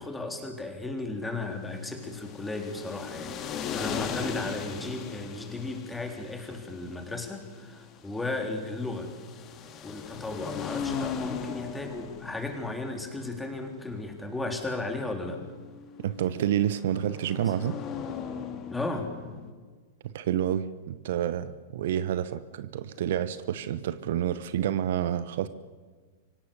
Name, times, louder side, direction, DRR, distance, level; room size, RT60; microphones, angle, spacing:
voice 1, 0.0-9.1 9.8-15.4 18.7-19.1, left 2 dB, 10° left, 3 dB, 3.9 m, -35 dB
sound 1, 1.6-19.5, left 7 dB, 35° left, 2.5 m, -39 dB
voice 2, 16.0-17.8 20.0-25.5, right 10 dB, 65° right, 14 dB, 0.9 m, -29 dB
25.0 x 17.5 x 6.8 m, 1.4 s
hypercardioid pair, 100°, 0 cm